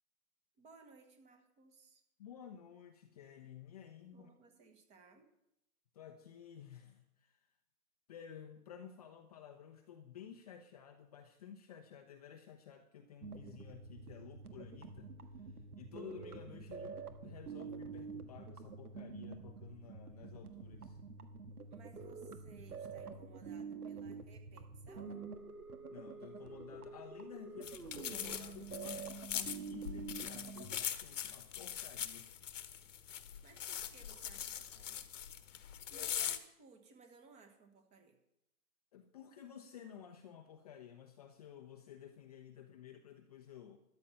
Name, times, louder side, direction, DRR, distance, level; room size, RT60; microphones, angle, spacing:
voice 1, 0.6-2.0 4.1-5.3 21.7-25.1 33.4-35.1 35.9-38.2, right 4 dB, 15° right, 6 dB, 1.2 m, -61 dB
voice 2, 2.2-4.3 5.9-7.5 8.1-21.0 25.9-32.3 35.9-36.1 38.9-43.8, left 9 dB, 25° left, 5 dB, 0.7 m, -54 dB
sound 1, 13.2-30.8, right 5 dB, 75° right, 1.6 m, -47 dB
sound 2, 27.6-36.4, left 9 dB, 55° left, 1.2 m, -42 dB
13.0 x 10.5 x 5.6 m, 0.83 s
hypercardioid pair, 140°, 46 cm